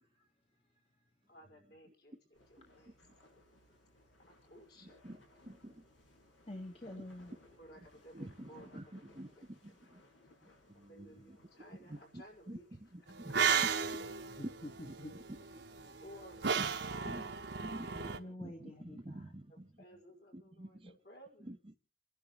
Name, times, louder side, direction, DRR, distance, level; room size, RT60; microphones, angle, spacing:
voice 1, 1.3-2.9 4.5-5.3 7.6-9.4 9.8-10.0 10.9-12.7 16.0-16.6 16.9-17.3 17.8-18.6 19.5-21.5, equal, 55° left, 5.2 m, -57 dB
sound 1, 2.3-17.5, left 1 dB, 85° left, 5.6 m, -65 dB
voice 2, 4.8-5.2 5.4-5.8 8.1-9.6 9.9-10.0 10.7-11.1 11.8-12.6 12.9-13.3 14.8-14.9 17.0-17.3 17.6-18.1 18.4-19.7 20.3-20.9 21.5-21.7, right 1 dB, 30° right, 0.9 m, -48 dB
voice 3, 6.5-7.3 14.3-15.1 17.8-19.3, left 1 dB, 30° left, 1.5 m, -48 dB
sound 2, 13.1-18.2, right 6 dB, 60° right, 1.1 m, -35 dB
29.0 x 11.0 x 3.1 m
head